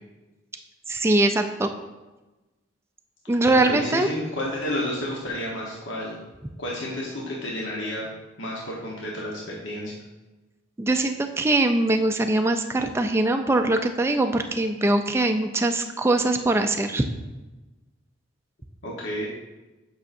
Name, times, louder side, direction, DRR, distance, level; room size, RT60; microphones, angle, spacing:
voice 1, 0.9-1.7 3.3-4.1 10.8-17.1, right 2 dB, 15° right, 6 dB, 0.3 m, -22 dB
voice 2, 3.6-6.2 6.6-8.1 8.4-9.9 18.8-19.3, left 1 dB, 75° left, -4 dB, 1.1 m, -31 dB
8.3 x 5.6 x 2.6 m, 1.1 s
head